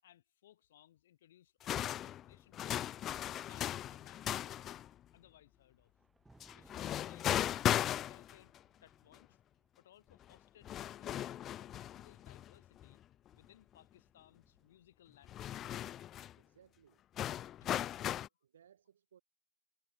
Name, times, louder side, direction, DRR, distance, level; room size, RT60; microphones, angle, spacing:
voice 1, 0.0-2.9 3.3-4.8 5.1-5.9 6.5-8.5 8.8-9.4 9.8-13.0 13.3-15.7, left 12 dB, 60° left, 6.9 m, -64 dB
sound 1, 1.6-4.9 6.4-8.6 9.1-9.2 10.3-10.4 10.6-12.9 13.3-13.4 15.2-16.3 17.2-18.3, left 11 dB, 25° left, 0.4 m, -37 dB
Thunder, 5.0-12.2 13.3-15.0, right 2 dB, 5° right, 2.4 m, -69 dB
voice 2, 16.4-17.0 18.0-19.2, right 9 dB, 70° right, 6.2 m, -65 dB
hypercardioid pair, 130°, 0 cm